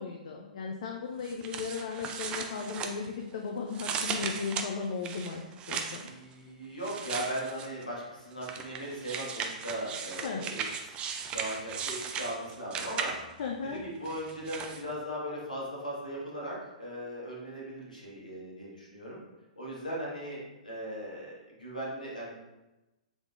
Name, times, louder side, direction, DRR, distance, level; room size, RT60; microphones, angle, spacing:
voice 1, 0.0-5.4 5.7-6.0 10.2-10.4 13.4-13.8, left 5 dB, 60° left, 1 dB, 0.4 m, -36 dB
sound 1, 1.2-3.3 3.7-6.1 6.8-7.8 8.4-13.4 14.1-14.8, right 6 dB, 25° right, 0.3 m, -37 dB
voice 2, 6.0-10.6 11.3-13.1 13.6-19.2 19.6-22.3, right 1 dB, 85° left, -4 dB, 1.3 m, -38 dB
3.5 x 3.2 x 2.4 m, 1.0 s
figure-of-eight pair, 115°, 4 cm